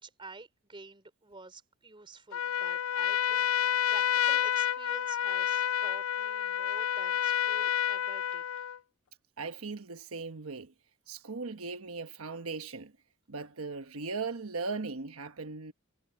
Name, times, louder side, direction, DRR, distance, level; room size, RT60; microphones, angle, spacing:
voice 1, 0.0-8.7, right 3 dB, 25° right, 3.4 m, -49 dB
Trumpet, 2.3-8.8, left 10 dB, 75° left, 0.4 m, -29 dB
voice 2, 9.4-10.7 11.1-12.9 13.3-15.7, right 4 dB, 75° right, 1.1 m, -38 dB
head